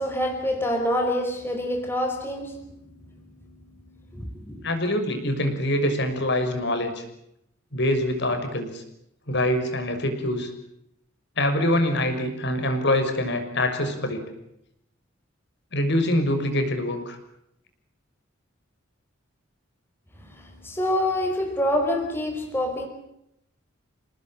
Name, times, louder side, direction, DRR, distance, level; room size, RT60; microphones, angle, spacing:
voice 1, 0.0-4.7 20.2-22.9, left 1 dB, 10° left, 5.2 m, -27 dB
voice 2, 4.6-7.0 7.7-8.8 9.3-10.5 11.4-14.2 15.7-17.2, left 1 dB, 55° left, 6.2 m, -24 dB
28.5 x 19.5 x 9.0 m
head